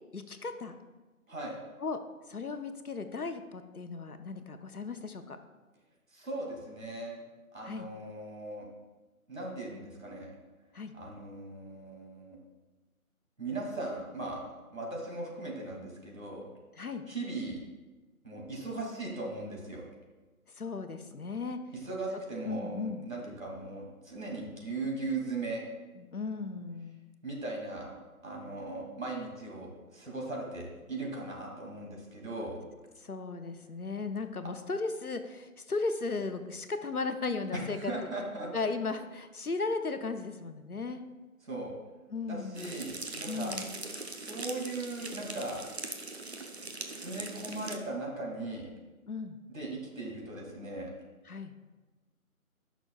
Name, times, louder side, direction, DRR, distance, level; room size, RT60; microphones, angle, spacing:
voice 1, 0.1-0.8 1.8-2.0 2.3-5.4 7.6-7.9 10.7-10.9 16.8-17.0 20.6-21.6 22.5-23.0 26.0-27.0 33.0-37.9 38.5-41.0 42.1-42.7 43.3-43.8 49.1-49.4 51.3-51.5, left 4 dB, 85° left, 8 dB, 0.9 m, -36 dB
voice 2, 6.1-7.2 7.5-8.7 9.3-10.3 10.9-12.4 13.4-14.4 14.7-16.4 17.1-17.6 18.2-19.9 21.8-25.6 27.2-27.9 28.2-32.6 37.5-38.7 41.4-41.7 42.2-43.6 44.1-45.6 46.9-48.7 49.5-50.9, right 2 dB, 65° right, -1 dB, 2.5 m, -38 dB
sound 1, 42.5-47.8, right 3 dB, 45° right, 0.7 m, -41 dB
15.0 x 6.1 x 2.3 m, 1.2 s
figure-of-eight pair, 160°, 43 cm